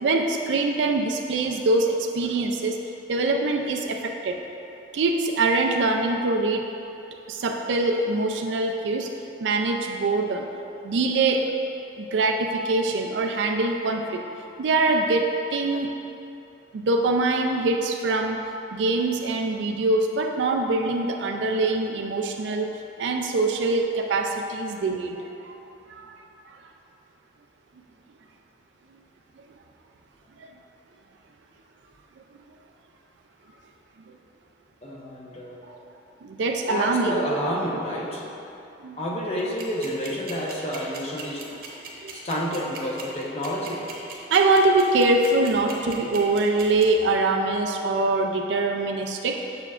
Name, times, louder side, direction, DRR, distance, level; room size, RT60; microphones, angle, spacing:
voice 1, 0.0-2.8 3.1-4.4 4.9-6.7 7.3-9.1 9.4-10.5 10.8-11.5 12.0-14.2 14.6-15.3 15.5-15.9 16.7-18.4 18.7-22.7 23.0-25.5 25.9-26.6 30.4-30.5 34.1-34.2 35.7-35.8 36.2-37.2 38.8-39.0 42.0-42.1 44.3-49.4, right 3 dB, 85° right, 3 dB, 0.4 m, -23 dB
voice 2, 34.8-35.6 36.7-38.3 39.0-41.4 42.1-43.8, equal, 35° left, -4 dB, 0.9 m, -29 dB
sound 1, 39.4-46.8, right 7 dB, 55° right, 0.9 m, -38 dB
6.9 x 6.6 x 2.4 m, 2.9 s
head